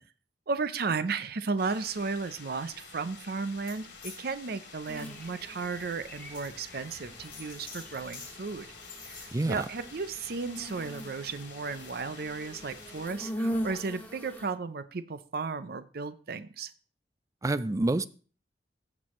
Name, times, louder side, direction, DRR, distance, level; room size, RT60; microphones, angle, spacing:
voice 1, 0.5-8.7 9.1-16.7, right 4 dB, 60° right, 0.6 m, -34 dB
sound 1, 1.6-13.1, left 4 dB, 80° left, 2.7 m, -50 dB
sound 2, 3.6-4.2 4.7-4.9 5.5-5.6 6.3-6.5 7.2-8.3 8.7-9.7, left 5 dB, 30° left, 4.6 m, -47 dB
sound 3, 4.9-14.5, equal, 10° left, 2.0 m, -41 dB
voice 2, 9.3-9.6 17.4-18.1, right 2 dB, 20° right, 0.4 m, -27 dB
15.0 x 6.2 x 3.1 m
head